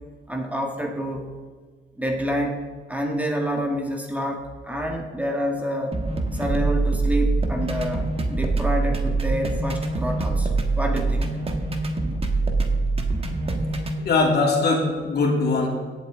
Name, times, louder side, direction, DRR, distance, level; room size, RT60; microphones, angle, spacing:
voice 1, 0.3-1.4 2.0-2.6 2.9-6.0 6.3-11.3, equal, 5° right, 1 dB, 1.5 m, -28 dB
sound 1, 5.9-14.0, right 3 dB, 30° right, 1.4 m, -24 dB
voice 2, 14.0-15.7, left 3 dB, 55° left, -1 dB, 3.0 m, -21 dB
17.0 x 8.0 x 3.7 m, 1.5 s
cardioid pair, 90°, 20 cm